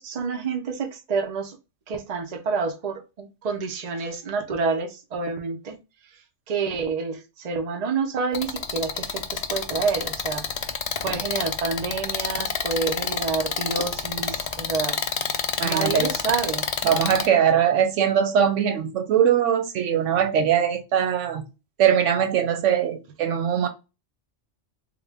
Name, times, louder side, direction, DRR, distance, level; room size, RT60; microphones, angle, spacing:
voice 1, 0.0-1.6 1.9-5.8 6.5-10.4 11.0-15.0 15.6-16.7, right 5 dB, 45° right, 0.6 m, -28 dB
sound 1, 8.3-17.3, left 6 dB, 80° left, 0.3 m, -28 dB
voice 2, 15.6-16.1 16.8-21.5 21.8-23.7, right 8 dB, 90° right, 1.0 m, -21 dB
3.5 x 2.1 x 3.4 m
omnidirectional pair, 1.2 m